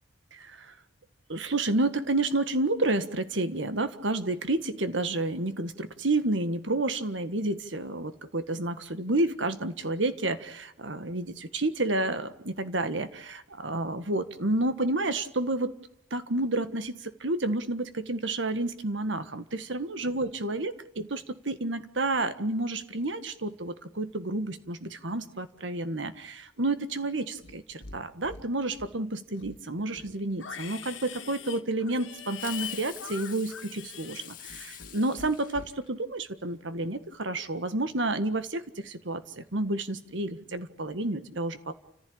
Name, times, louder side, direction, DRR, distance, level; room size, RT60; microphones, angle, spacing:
voice 1, 0.3-0.7 1.3-15.7 16.1-41.7, right 2 dB, 80° right, 11 dB, 1.7 m, -30 dB
Livestock farm animals working animals, 27.3-28.0 28.2-29.0 29.3-34.9 35.2-35.7, left 7 dB, 90° left, 1.8 m, -43 dB
Fireworks, 32.3-36.1, left 11 dB, 45° left, 2.4 m, -45 dB
29.5 x 15.0 x 8.8 m, 0.82 s
head